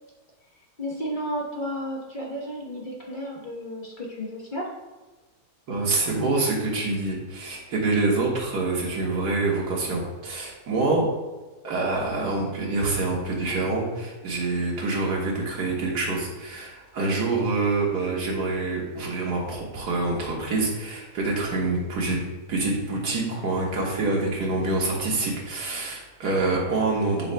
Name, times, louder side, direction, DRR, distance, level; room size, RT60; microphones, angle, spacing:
voice 1, 0.8-4.7 6.0-6.2, equal, 35° left, -3 dB, 1.1 m, -32 dB
voice 2, 5.7-11.1 11.6-27.3, right 3 dB, 85° right, -2 dB, 2.1 m, -26 dB
11.0 x 5.8 x 2.2 m, 1.2 s
omnidirectional pair, 1.7 m